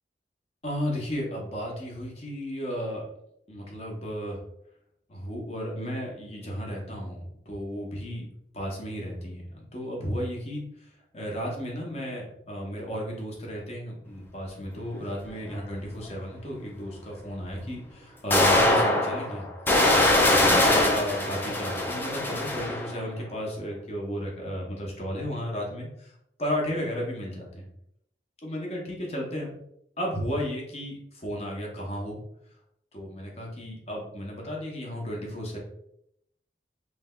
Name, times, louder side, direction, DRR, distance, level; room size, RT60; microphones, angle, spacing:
voice 1, 0.6-3.0 3.5-4.4 5.1-8.2 8.5-19.5 19.9-20.5 20.9-27.7 28.4-29.6 30.0-32.2 32.9-35.6, equal, 35° left, -1 dB, 0.9 m, -34 dB
sound 1, 15.6-15.7 17.5-17.6 18.3-23.0, left 1 dB, 10° left, 0.4 m, -22 dB
3.2 x 2.2 x 3.6 m, 0.76 s
head